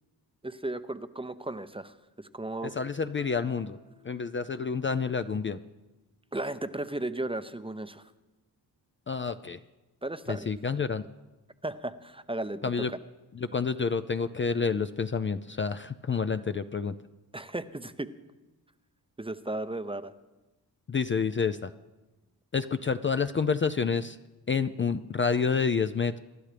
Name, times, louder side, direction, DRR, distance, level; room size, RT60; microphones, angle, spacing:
voice 1, 0.4-1.9 2.3-2.8 6.3-8.0 10.0-10.5 11.6-13.0 17.3-18.1 19.2-20.1, right 2 dB, 15° right, 11 dB, 0.6 m, -35 dB
voice 2, 2.6-3.8 4.0-5.6 9.1-9.6 10.3-11.0 12.6-12.9 13.3-16.9 20.9-21.7 22.5-24.2 24.5-26.2, left 5 dB, 30° left, 10 dB, 0.4 m, -29 dB
sound 1, 3.2-5.0, left 1 dB, 10° left, 1.1 m, -56 dB
24.5 x 11.5 x 3.4 m, 1.1 s
cardioid pair, 65°, 40 cm